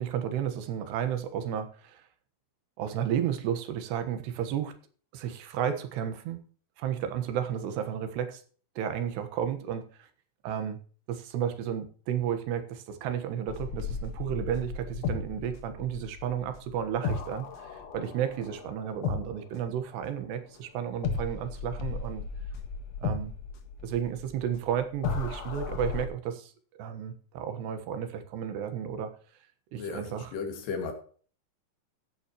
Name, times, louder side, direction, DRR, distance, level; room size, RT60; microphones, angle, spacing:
voice 1, 0.0-2.0 2.8-4.7 5.1-6.4 6.8-8.4 8.8-10.1 10.4-10.8 11.1-22.2 23.0-23.3 23.8-26.5 26.8-29.1 29.7-30.3, right 9 dB, 85° right, 3.5 m, -32 dB
sound 1, 13.5-20.6 21.0-26.1, left 5 dB, 55° left, 2.1 m, -35 dB
voice 2, 29.8-30.9, left 5 dB, 80° left, 4.4 m, -35 dB
15.5 x 9.9 x 3.1 m
omnidirectional pair, 4.7 m